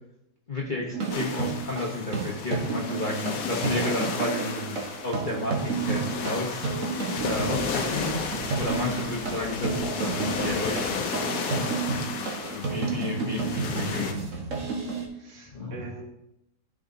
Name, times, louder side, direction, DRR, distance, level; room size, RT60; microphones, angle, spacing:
voice 1, 0.5-6.8 7.2-8.1 8.6-11.1 12.4-14.2 15.5-15.9, left 2 dB, 35° left, -4 dB, 0.9 m, -32 dB
sound 1, 0.9-15.1, right 4 dB, 45° right, 1.5 m, -31 dB
sound 2, 1.1-14.1, left 5 dB, 60° left, 1.2 m, -33 dB
Fowl, 7.2-12.5, left 4 dB, 75° left, 1.6 m, -48 dB
voice 2, 7.8-8.5 9.0-9.6 12.1-12.6 12.9-13.3 15.1-16.0, right 5 dB, 70° right, 0 dB, 2.0 m, -44 dB
13.5 x 5.0 x 2.7 m, 0.84 s
omnidirectional pair, 2.1 m